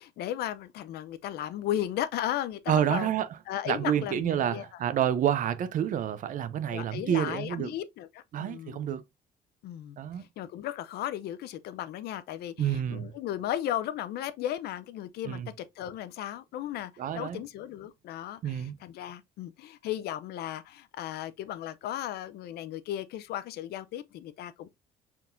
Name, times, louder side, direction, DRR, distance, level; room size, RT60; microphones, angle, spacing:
voice 1, 0.0-3.1 3.5-4.8 6.7-8.9 9.6-24.7, left 12 dB, 70° left, 0.5 m, -35 dB
voice 2, 2.7-3.3 3.7-7.7 8.3-9.0 10.0-10.2 12.6-13.1 15.3-15.5 17.0-17.4 18.4-18.8, right 9 dB, 50° right, 0.5 m, -28 dB
4.6 x 3.7 x 2.5 m
cardioid pair, 110°, 17 cm